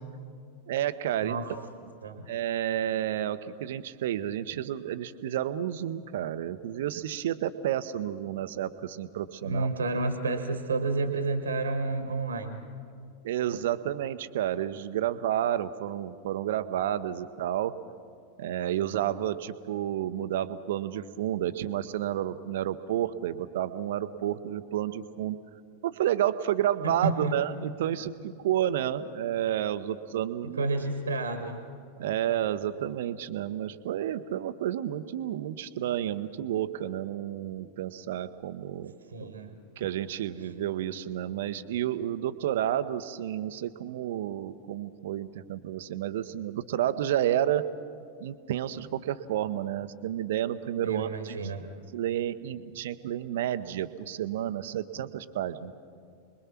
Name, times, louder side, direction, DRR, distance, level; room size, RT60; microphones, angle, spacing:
voice 1, 0.7-1.4 2.3-9.7 13.2-17.7 18.4-25.4 25.8-30.6 32.0-38.9 39.8-47.6 48.2-51.4 51.9-55.7, right 11 dB, 55° right, 12 dB, 0.9 m, -30 dB
voice 2, 1.2-1.5 2.0-2.3 9.4-12.6 26.8-27.4 30.4-31.7 39.1-39.6 50.8-51.7, right 3 dB, 70° right, 8 dB, 1.5 m, -30 dB
29.5 x 22.0 x 6.0 m, 2.4 s
figure-of-eight pair, 90°, 0 cm